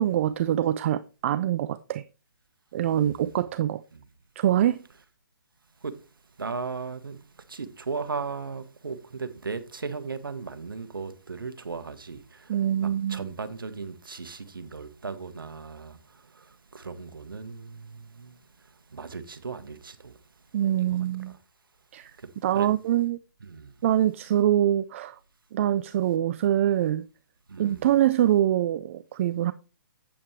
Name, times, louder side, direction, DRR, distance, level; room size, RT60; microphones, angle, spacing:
voice 1, 0.0-2.0 2.7-3.8 4.4-4.8 12.5-13.3 20.5-21.3 21.9-22.1 22.4-23.2 23.8-25.2 25.5-27.0 27.6-29.5, right 11 dB, 40° right, 0.4 m, -24 dB
voice 2, 2.8-3.4 3.9-4.1 5.8-6.0 6.4-20.2 20.8-21.0 21.3-21.4 22.2-22.7 23.4-23.8 27.5-27.9, right 4 dB, 85° right, 1.3 m, -37 dB
8.7 x 8.7 x 3.2 m
hypercardioid pair, 145°, 11 cm